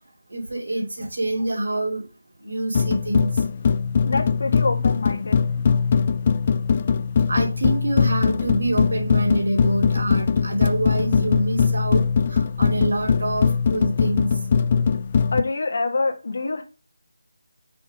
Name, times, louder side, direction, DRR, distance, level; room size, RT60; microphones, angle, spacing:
voice 1, 0.3-2.1 2.4-3.4 7.3-14.3, right 1 dB, 65° right, 1 dB, 2.6 m, -26 dB
sound 1, 2.7-15.4, left 6 dB, 35° left, 0.4 m, -21 dB
voice 2, 4.0-5.4 15.3-16.6, left 3 dB, 55° left, 5 dB, 1.5 m, -25 dB
5.8 x 3.9 x 5.1 m, 0.31 s
figure-of-eight pair, 165°, 0 cm